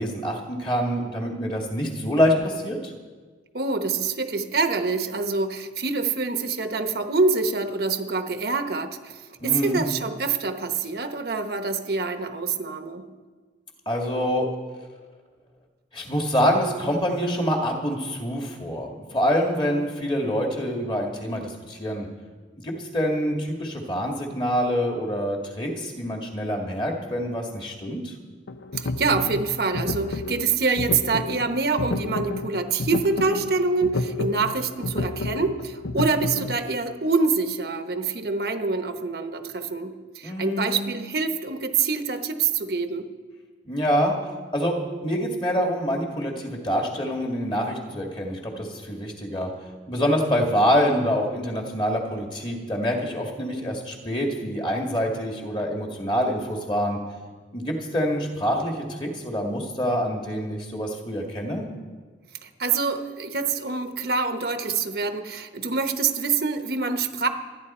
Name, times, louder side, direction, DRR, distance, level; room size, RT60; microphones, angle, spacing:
voice 1, 0.0-2.9 9.4-9.8 13.9-14.5 15.9-22.1 22.6-28.1 40.2-40.9 43.7-44.1 44.5-44.8 45.0-49.5 49.9-57.0 57.5-61.7, equal, 25° left, 1 dB, 1.9 m, -26 dB
voice 2, 3.5-13.0 28.7-43.1 62.4-67.3, right 4 dB, 55° right, 7 dB, 0.9 m, -26 dB
sound 1, 28.5-36.6, left 3 dB, 80° left, 0.6 m, -31 dB
25.5 x 10.0 x 4.3 m, 1.4 s
head